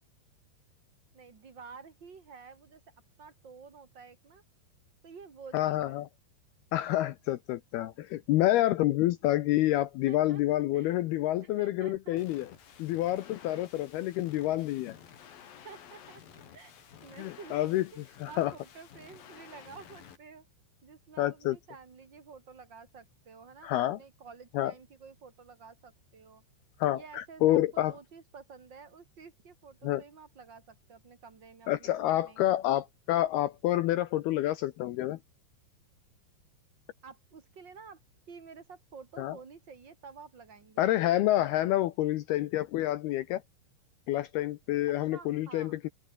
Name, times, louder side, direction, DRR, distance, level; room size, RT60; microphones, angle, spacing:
voice 1, 1.1-4.4 5.0-6.0 10.1-10.4 10.7-10.9 11.4-12.4 13.5-13.9 15.6-16.7 17.0-17.8 18.0-20.5 20.8-26.4 26.9-32.4 37.0-38.0 38.3-40.9 44.9-45.7, right 5 dB, 35° right, 2.2 m, -51 dB
voice 2, 5.5-6.1 6.7-12.5 12.8-15.0 17.2-17.8 18.2-18.5 21.2-21.6 23.6-24.0 24.5-24.7 26.8-27.9 29.8-30.0 31.7-35.2 39.2-39.4 40.8-43.4 44.1-45.9, left 14 dB, 80° left, 2.3 m, -28 dB
sound 1, 12.2-20.2, left 8 dB, 55° left, 3.9 m, -53 dB
open air
omnidirectional pair, 5.5 m